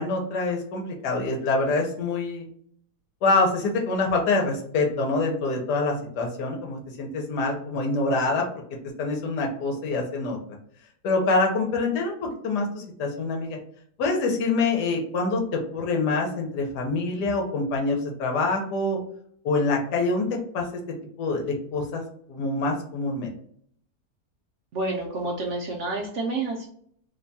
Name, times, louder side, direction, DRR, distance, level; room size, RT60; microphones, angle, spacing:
voice 1, 0.0-2.5 3.2-8.5 9.0-10.4 11.0-13.6 14.0-19.0 19.4-20.3 20.5-20.6 21.2-22.0 22.3-23.3, left 3 dB, 85° left, 1 dB, 1.3 m, -25 dB
voice 2, 24.7-26.7, right 2 dB, 65° right, -1 dB, 0.8 m, -29 dB
3.0 x 2.2 x 3.9 m, 0.63 s
omnidirectional pair, 1.7 m